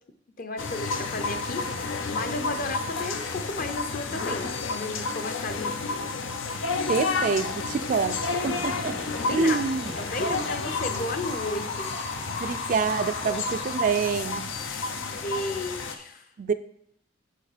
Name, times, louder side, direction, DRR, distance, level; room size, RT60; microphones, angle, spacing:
voice 1, 0.4-5.8 8.4-8.5 9.1-11.9 15.1-16.3, left 2 dB, 45° left, 7 dB, 0.7 m, -34 dB
sound 1, 0.6-16.0, left 4 dB, 90° left, 0.7 m, -31 dB
voice 2, 6.9-9.0 9.3-9.9 10.2-10.3 12.3-14.5 16.4-16.5, right 5 dB, 45° right, 11 dB, 0.3 m, -27 dB
sound 2, 8.4-14.4, left 2 dB, 70° left, 2.9 m, -38 dB
6.8 x 6.4 x 5.0 m, 0.73 s
head